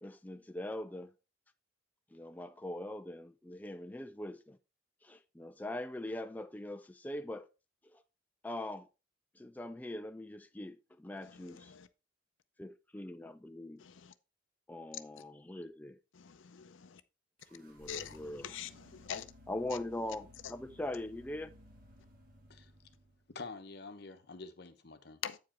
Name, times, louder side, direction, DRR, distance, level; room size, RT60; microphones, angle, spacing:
voice 1, 0.0-1.1 2.1-4.6 5.0-7.5 7.8-8.0 8.4-8.9 9.4-11.7 12.6-13.8 14.7-16.0 17.5-18.5 19.5-21.6, left 1 dB, 10° left, 0.4 m, -42 dB
voice 2, 11.2-11.9 13.8-14.1 16.2-17.0 17.9-19.2 25.2-25.4, left 9 dB, 85° left, 0.5 m, -44 dB
sound 1, 17.4-23.3, left 1 dB, 50° right, 1.7 m, -58 dB
voice 3, 23.3-25.2, left 3 dB, 60° left, 1.0 m, -47 dB
8.2 x 4.9 x 4.3 m
head